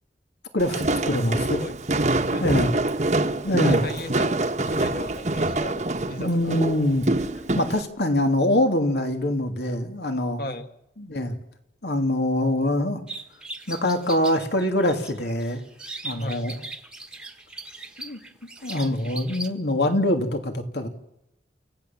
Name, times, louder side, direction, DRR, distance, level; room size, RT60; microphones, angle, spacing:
voice 1, 0.5-1.6 2.4-2.7 3.4-3.9 6.2-7.1 7.6-10.4 11.0-11.4 11.8-13.0 13.7-15.6 16.0-16.6 18.0-18.2 18.6-20.9, left 1 dB, 75° left, 5 dB, 3.0 m, -24 dB
Walk footsteps, 0.6-7.8, right 2 dB, 40° right, 1.2 m, -25 dB
voice 2, 2.1-2.7 3.5-6.6 10.4-10.7 16.2-16.5, left 1 dB, 55° left, 7 dB, 2.0 m, -37 dB
sound 1, 13.1-19.5, right 2 dB, 5° right, 1.4 m, -39 dB
29.0 x 15.5 x 7.4 m, 0.81 s
head